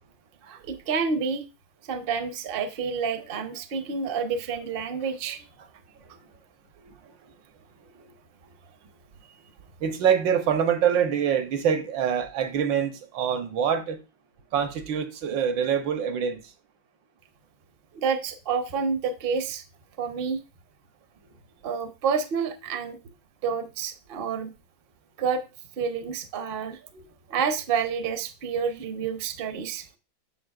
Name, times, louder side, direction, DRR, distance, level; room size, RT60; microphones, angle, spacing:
voice 1, 0.4-1.5 1.8-5.7 17.9-19.6 20.0-20.4 21.6-23.0 23.4-24.5 25.2-25.4 25.8-29.9, right 6 dB, 55° right, 0.6 m, -29 dB
voice 2, 9.8-14.0 14.5-16.4, right 8 dB, 80° right, 1.6 m, -25 dB
7.7 x 6.8 x 2.4 m
omnidirectional pair, 2.0 m